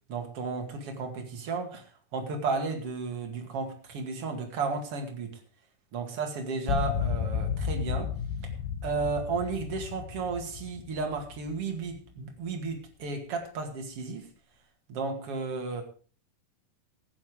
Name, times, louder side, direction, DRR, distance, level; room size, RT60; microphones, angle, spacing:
voice 1, 0.1-1.8 2.1-5.4 5.9-8.1 8.8-14.3 14.9-15.8, right 4 dB, 45° right, 4 dB, 2.5 m, -33 dB
sound 1, 6.7-12.0, left 7 dB, 70° left, 3.0 m, -33 dB
14.5 x 9.7 x 4.8 m, 0.40 s
omnidirectional pair, 4.7 m